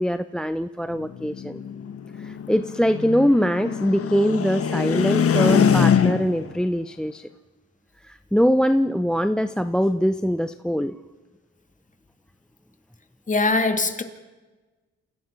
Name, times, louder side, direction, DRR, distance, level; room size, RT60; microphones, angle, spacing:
voice 1, 0.0-1.6 2.2-7.3 8.0-11.0, equal, 5° left, 13 dB, 0.7 m, -22 dB
sound 1, 1.0-6.5, left 7 dB, 50° left, 1.4 m, -23 dB
voice 2, 13.3-14.0, left 3 dB, 25° left, 8 dB, 2.3 m, -21 dB
28.5 x 17.0 x 5.9 m, 1.2 s
cardioid pair, 90°, 30 cm